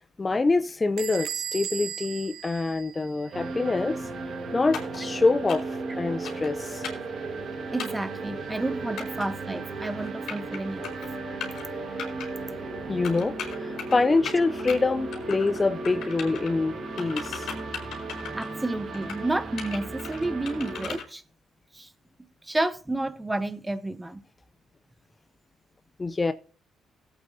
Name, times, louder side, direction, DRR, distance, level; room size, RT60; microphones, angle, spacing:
voice 1, 0.2-4.0 4.5-6.8 12.9-13.3 13.6-17.5 26.0-26.3, left 3 dB, 25° left, 0.5 m, -25 dB
Bell / Door, 1.0-3.5, right 9 dB, 70° right, 0.5 m, -36 dB
sound 1, 3.3-21.0, right 3 dB, 55° right, 1.7 m, -35 dB
sound 2, 4.7-5.0 5.5-5.8 6.2-6.5 6.8-7.1 7.8-8.1 9.0-9.3 10.0-10.6 10.8-11.1 11.4-11.6 12.0-12.3 13.0-14.0 14.3-14.8 15.1-15.6 15.8-16.5 17.0-18.5 18.9-19.2 19.6-21.0, left 7 dB, 75° left, 3.1 m, -37 dB
voice 2, 7.7-11.0 18.3-21.2 21.7-21.9 22.5-24.2, right 2 dB, 15° right, 0.8 m, -30 dB
18.5 x 8.3 x 2.7 m
cardioid pair, 90°, 0 cm